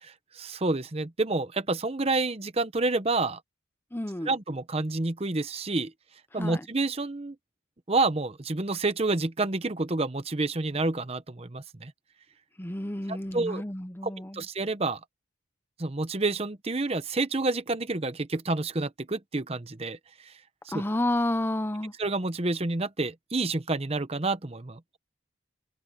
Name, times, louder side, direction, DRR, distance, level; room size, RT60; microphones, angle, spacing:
voice 1, 0.0-3.4 4.2-5.9 6.3-7.3 7.9-11.9 13.1-13.6 14.0-15.0 15.8-20.0 20.2-20.3 20.6-20.8 22.0-25.0, right 3 dB, 30° right, 0.8 m, -29 dB
voice 2, 3.9-4.3 6.4-6.6 12.6-14.4 20.7-21.9, left 1 dB, 10° left, 0.8 m, -30 dB
head